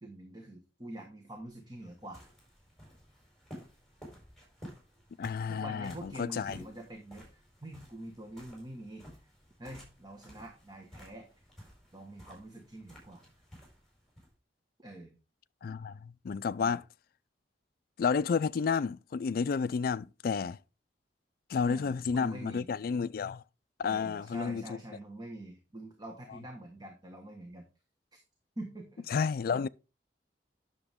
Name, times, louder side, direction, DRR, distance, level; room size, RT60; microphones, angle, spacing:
voice 1, 0.0-2.2 5.5-9.1 9.6-11.3 11.9-13.3 14.8-15.2 16.6-16.8 21.7-22.7 23.8-27.6 28.1-28.2 28.6-29.0, right 1 dB, 25° right, 1.5 m, -45 dB
sound 1, 1.4-14.3, equal, ahead, 4.9 m, -54 dB
voice 2, 5.2-6.6 15.6-16.8 18.0-20.6 21.5-23.4 23.8-24.6 29.1-29.7, left 5 dB, 55° left, 0.3 m, -31 dB
10.0 x 6.9 x 3.6 m
head